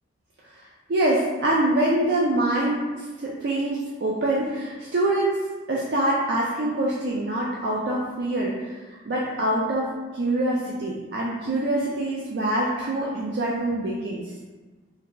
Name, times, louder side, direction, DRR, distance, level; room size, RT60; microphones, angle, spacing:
voice 1, 0.9-5.4 5.7-8.8 9.0-9.9 10.1-14.3, right 1 dB, 60° right, -4 dB, 0.4 m, -25 dB
2.7 x 2.3 x 3.7 m, 1.3 s
head